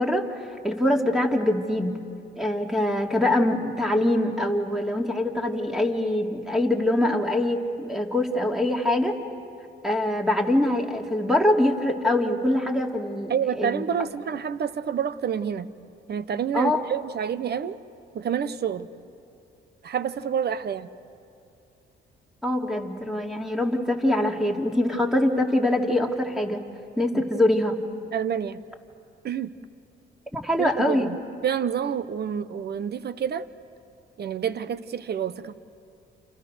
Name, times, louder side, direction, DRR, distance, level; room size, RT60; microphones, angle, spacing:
voice 1, 0.0-2.0 2.4-9.2 9.8-13.9 16.5-16.8 22.4-26.6 27.0-27.8 30.3-31.1, left 1 dB, ahead, 2 dB, 2.8 m, -24 dB
voice 2, 13.3-15.7 16.1-17.8 18.1-18.9 19.8-20.9 28.1-28.6 29.2-29.5 30.6-31.2 31.4-33.5 34.2-35.5, right 8 dB, 55° right, 14 dB, 1.1 m, -28 dB
29.0 x 28.5 x 6.4 m, 2.6 s
cardioid pair, 90°, 20 cm